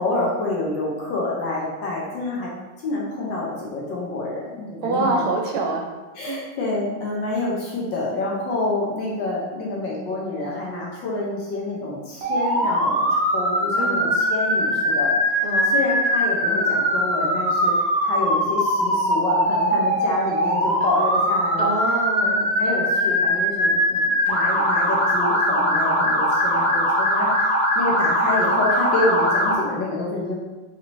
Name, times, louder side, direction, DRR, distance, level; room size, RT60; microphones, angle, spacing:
voice 1, 0.0-2.5 2.8-5.3 6.2-15.5 15.7-17.7 18.0-21.7 22.2-30.3, left 2 dB, 70° left, -4 dB, 1.2 m, -27 dB
voice 2, 4.8-5.9 6.3-6.4 13.8-14.1 15.4-15.7 21.6-22.4, right 3 dB, 80° right, 1 dB, 1.5 m, -25 dB
Motor vehicle (road) / Siren, 12.2-29.5, equal, 45° right, 0.9 m, -21 dB
4.2 x 2.9 x 2.6 m, 1.2 s
omnidirectional pair, 2.3 m